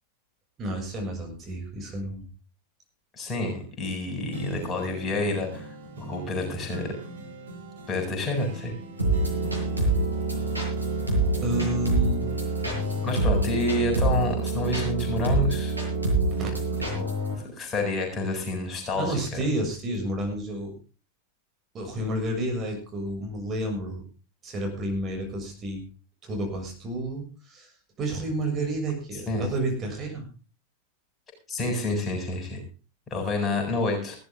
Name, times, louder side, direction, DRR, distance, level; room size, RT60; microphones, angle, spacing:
voice 1, 0.6-2.3 11.4-12.3 16.3-16.5 19.0-20.7 21.7-24.0 24.4-25.8 26.2-27.7 28.0-30.3, right 1 dB, 25° right, 1 dB, 6.9 m, -30 dB
voice 2, 3.2-5.7 6.0-6.9 7.9-8.7 13.0-15.7 16.9-19.4 29.3-29.4 31.5-32.6 33.1-34.2, left 2 dB, 20° left, 2 dB, 7.7 m, -29 dB
sound 1, 4.3-15.9 16.3-18.2 18.7-18.8, equal, 65° right, 5.6 m, -41 dB
sound 2, 9.0-17.3, right 2 dB, 85° right, 7.1 m, -26 dB
17.5 x 14.5 x 3.7 m, 0.35 s
figure-of-eight pair, 90°, 0 cm